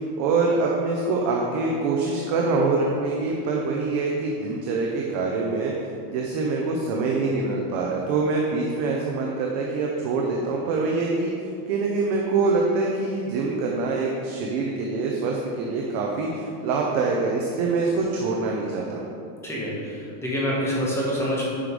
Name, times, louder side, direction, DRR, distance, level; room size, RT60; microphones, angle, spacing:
voice 1, 0.0-5.7 6.1-19.1, right 3 dB, 25° right, -1 dB, 0.4 m, -25 dB
voice 2, 19.4-21.4, equal, 5° left, -6 dB, 1.3 m, -26 dB
9.9 x 5.2 x 4.7 m, 2.5 s
supercardioid pair, 170°, 47 cm